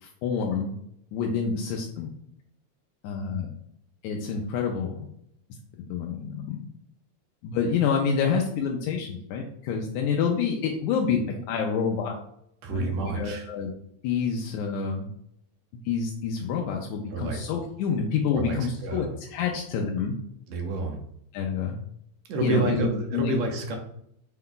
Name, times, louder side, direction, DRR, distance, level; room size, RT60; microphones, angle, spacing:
voice 1, 0.0-0.7 1.1-2.1 3.0-3.5 4.0-5.1 5.8-6.6 7.4-12.2 12.7-13.7 14.0-15.1 15.9-20.2 21.3-21.8 22.4-23.3, left 6 dB, 85° left, 1 dB, 2.0 m, -28 dB
voice 2, 12.6-13.5 17.1-17.4 18.3-18.6 18.8-19.1 20.5-21.0 22.3-23.8, right 2 dB, 70° right, 2 dB, 1.9 m, -29 dB
6.1 x 2.3 x 3.7 m, 0.72 s
omnidirectional pair, 3.3 m